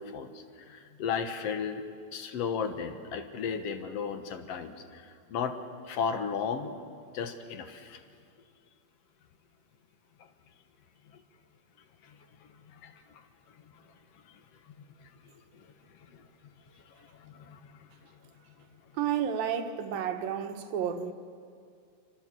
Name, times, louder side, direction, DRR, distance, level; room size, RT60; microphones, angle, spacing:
voice 1, 0.0-1.8 2.1-5.6 5.8-6.8 7.1-8.0 10.2-10.3 11.1-11.2 12.0-13.8 14.1-14.4 14.7-18.3 18.7-18.9, left 6 dB, 55° left, 2.1 m, -37 dB
voice 2, 19.0-21.1, right 8 dB, 85° right, 3.1 m, -31 dB
26.0 x 26.0 x 7.7 m
omnidirectional pair, 3.9 m